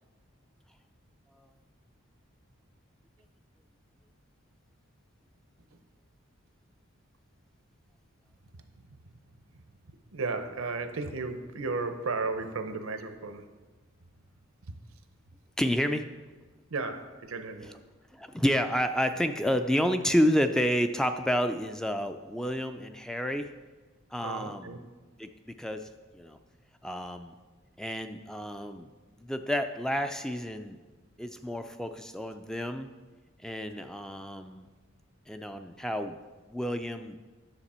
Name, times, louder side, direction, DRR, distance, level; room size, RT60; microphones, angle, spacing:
voice 1, 8.6-9.2 9.5-13.5 14.7-14.8 16.7-17.8 24.2-24.8, right 3 dB, 85° right, 8 dB, 0.8 m, -35 dB
voice 2, 15.6-16.1 18.1-23.5 24.1-24.8 25.2-26.4 26.8-27.4 27.8-28.9 29.2-30.8 31.2-32.9 33.4-34.7 35.3-36.2 36.5-37.2, equal, 5° left, 7 dB, 0.3 m, -30 dB
9.7 x 6.7 x 4.3 m, 1.3 s
head